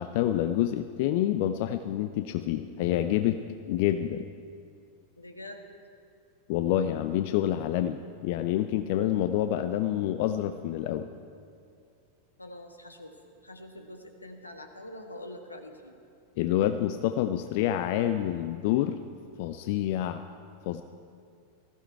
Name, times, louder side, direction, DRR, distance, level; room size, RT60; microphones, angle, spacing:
voice 1, 0.0-3.4 3.7-4.2 6.5-11.1 16.4-19.0 19.4-20.2 20.6-20.8, left 12 dB, 50° left, 9 dB, 0.5 m, -27 dB
voice 2, 5.2-5.6 12.4-13.1 13.4-16.0, left 1 dB, 85° left, 5 dB, 1.3 m, -44 dB
19.0 x 14.5 x 4.6 m, 2.5 s
figure-of-eight pair, 90°, 0 cm